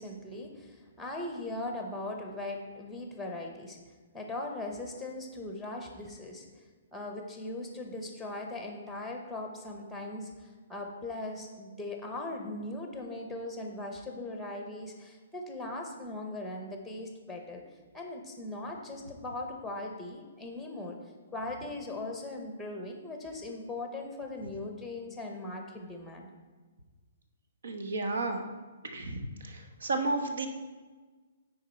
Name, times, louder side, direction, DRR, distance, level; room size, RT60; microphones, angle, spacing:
voice 1, 0.0-3.8 4.1-6.4 6.9-17.6 17.9-21.0 21.3-26.3, left 2 dB, ahead, 2 dB, 0.7 m, -39 dB
voice 2, 27.6-28.4 28.9-30.5, right 2 dB, 80° right, 6 dB, 1.1 m, -32 dB
9.2 x 4.4 x 4.4 m, 1.4 s
hypercardioid pair, 170°, 0 cm